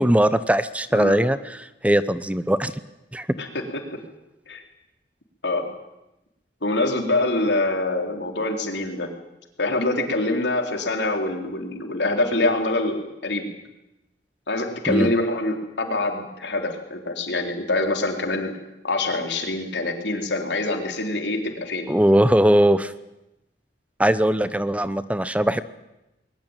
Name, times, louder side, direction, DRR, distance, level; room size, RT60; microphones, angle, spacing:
voice 1, 0.0-1.6 1.8-2.7 3.1-3.3 14.9-15.1 21.9-22.9 24.0-25.6, right 1 dB, 10° right, 14 dB, 0.7 m, -20 dB
voice 2, 6.6-9.1 9.6-13.5 14.5-18.5 18.8-21.9, left 2 dB, 85° left, 4 dB, 3.8 m, -25 dB
21.5 x 19.5 x 9.1 m, 0.93 s
head